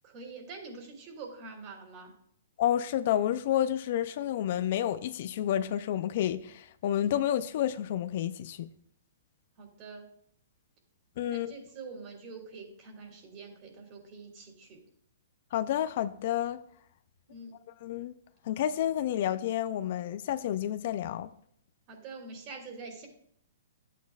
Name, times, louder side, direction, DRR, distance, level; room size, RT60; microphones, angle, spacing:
voice 1, 0.0-2.1 9.6-10.1 11.3-14.8 17.3-17.5 21.9-23.1, right 4 dB, 35° right, 2.9 m, -45 dB
voice 2, 2.6-8.7 11.2-11.5 15.5-16.6 17.8-18.1 18.5-21.3, left 11 dB, 55° left, 0.4 m, -30 dB
12.0 x 8.3 x 2.4 m
hypercardioid pair, 140°, 0 cm